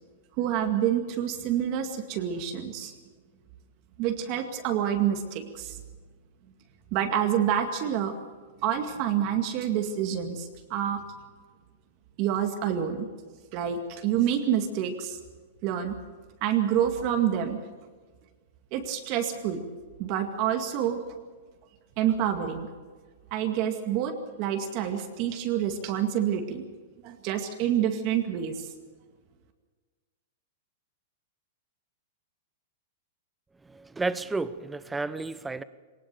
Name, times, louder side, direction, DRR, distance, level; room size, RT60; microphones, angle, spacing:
voice 1, 0.4-2.9 4.0-5.7 6.9-8.2 8.6-11.0 12.2-13.1 13.5-15.2 15.6-15.9 16.4-17.6 18.7-19.6 20.0-21.0 22.0-22.7 23.3-24.1 24.4-26.6 27.0-28.6, right 9 dB, 35° right, 5 dB, 2.1 m, -27 dB
voice 2, 33.6-35.6, right 3 dB, 5° right, 15 dB, 0.7 m, -32 dB
20.5 x 19.0 x 6.9 m, 1.5 s
supercardioid pair, 160°, 0 cm